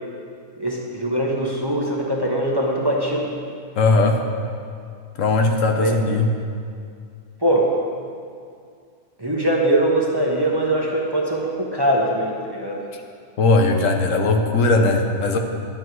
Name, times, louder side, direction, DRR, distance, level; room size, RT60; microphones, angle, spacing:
voice 1, 0.6-3.3 5.8-6.0 7.4-7.8 9.2-12.8, right 1 dB, 20° right, -2 dB, 0.9 m, -22 dB
voice 2, 3.8-4.2 5.2-6.3 13.4-15.4, left 3 dB, 70° left, 4 dB, 1.2 m, -18 dB
11.0 x 8.8 x 4.6 m, 2.3 s
omnidirectional pair, 1.4 m